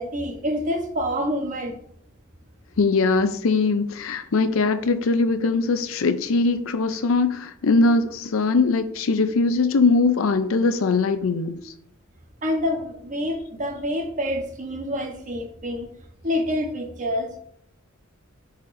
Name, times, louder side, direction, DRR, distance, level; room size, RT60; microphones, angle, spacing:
voice 1, 0.0-1.8 12.4-15.9 16.2-17.4, equal, 40° right, 1.0 m, -27 dB
voice 2, 2.8-11.7, left 3 dB, 70° left, 0.5 m, -21 dB
10.0 x 4.1 x 2.6 m
head